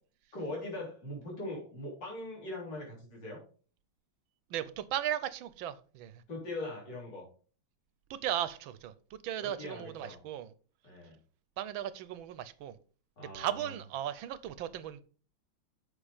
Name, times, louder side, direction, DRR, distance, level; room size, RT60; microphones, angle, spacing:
voice 1, 0.3-3.4 6.3-7.2 9.4-10.2 10.8-11.2 13.2-13.7, left 1 dB, 55° left, 4.2 m, -41 dB
voice 2, 4.5-6.2 8.1-10.5 11.6-12.8 13.3-15.0, right 11 dB, 75° right, 1.5 m, -36 dB
8.1 x 5.8 x 5.0 m
omnidirectional pair, 2.3 m